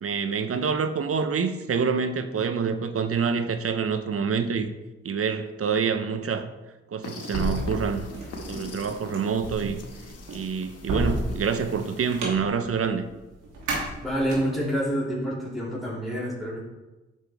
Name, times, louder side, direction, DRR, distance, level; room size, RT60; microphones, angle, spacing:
voice 1, 0.0-4.7 5.0-6.5 6.9-8.1 8.5-9.8 10.3-13.1, right 6 dB, 50° right, 9 dB, 0.9 m, -27 dB
sound 1, 7.0-12.2, left 2 dB, 55° left, 1.9 m, -42 dB
sound 2, 7.3-14.7, right 1 dB, 75° right, 2.7 m, -32 dB
voice 2, 14.0-16.6, equal, ahead, -7 dB, 2.9 m, -27 dB
9.2 x 6.6 x 3.6 m, 1.1 s
hypercardioid pair, 45°, 30 cm